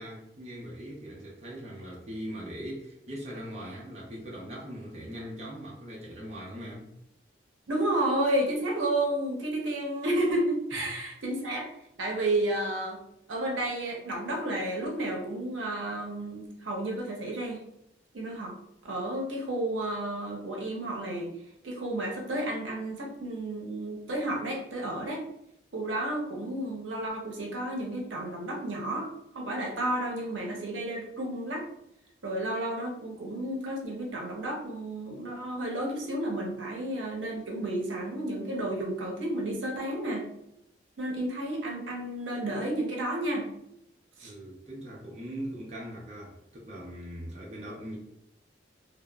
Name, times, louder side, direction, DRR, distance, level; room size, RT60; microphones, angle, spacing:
voice 1, 0.0-6.9 44.2-48.0, equal, 35° right, 0.5 m, -40 dB
voice 2, 7.7-11.7 12.0-13.0 13.3-17.6 18.1-18.5 18.8-21.3 21.6-25.2 25.7-29.1 29.3-31.6 32.2-40.3 41.0-43.5 44.2-44.3, right 1 dB, 80° right, 0.6 m, -31 dB
2.8 x 2.0 x 2.2 m
head